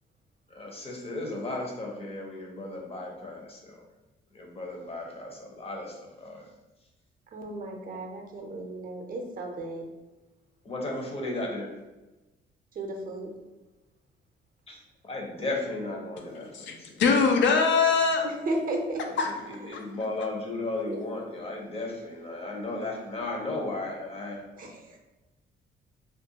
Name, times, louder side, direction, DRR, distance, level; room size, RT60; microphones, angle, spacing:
voice 1, 0.5-3.8 4.3-6.5 10.6-11.7 14.7-14.8 15.0-16.9 19.2-24.4, left 2 dB, 30° left, 0 dB, 0.7 m, -35 dB
voice 2, 7.3-9.8 12.8-13.3 18.2-19.0 19.6-19.8 20.9-21.0 24.6-25.0, right 2 dB, 45° right, 2 dB, 0.5 m, -34 dB
voice 3, 16.5-18.3 19.2-19.3, left 5 dB, 70° left, 3 dB, 0.4 m, -22 dB
2.4 x 2.2 x 2.8 m, 1.1 s
cardioid pair, 90°, 20 cm